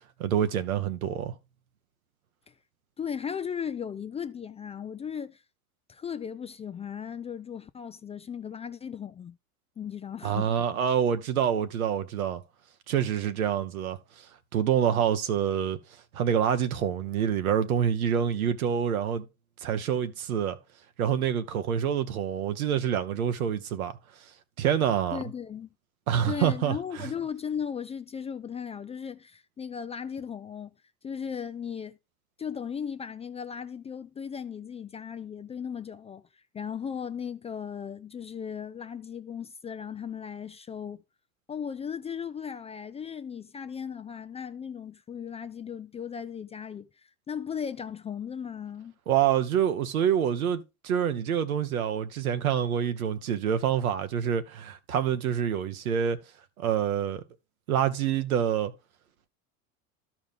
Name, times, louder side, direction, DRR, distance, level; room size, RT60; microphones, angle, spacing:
voice 1, 0.2-1.3 10.2-12.4 12.9-14.0 14.5-15.8 16.1-19.3 19.6-20.6 21.0-23.9 24.6-25.2 26.1-27.1 49.1-56.2 56.6-57.2 57.7-58.7, right 9 dB, 85° right, 1.1 m, -26 dB
voice 2, 3.0-5.4 5.9-9.4 9.8-10.5 25.1-25.7 26.3-30.7 31.0-32.0 32.4-41.0 41.5-48.9, left 7 dB, 15° left, 0.3 m, -37 dB
13.0 x 4.9 x 3.5 m
hypercardioid pair, 85°, 41 cm